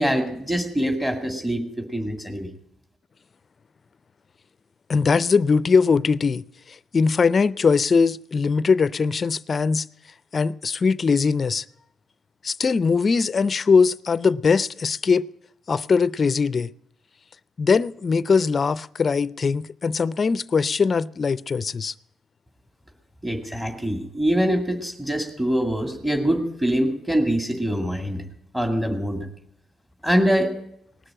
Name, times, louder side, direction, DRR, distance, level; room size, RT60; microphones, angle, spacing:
voice 1, 0.0-2.5 23.2-28.2 28.5-29.3 30.0-30.5, equal, 10° right, 2.1 m, -24 dB
voice 2, 4.9-6.4 6.7-9.8 10.3-11.6 12.4-15.3 15.7-16.7 17.6-21.9, left 5 dB, 40° left, 0.4 m, -21 dB
18.5 x 6.6 x 8.8 m
cardioid pair, 90°, 0 cm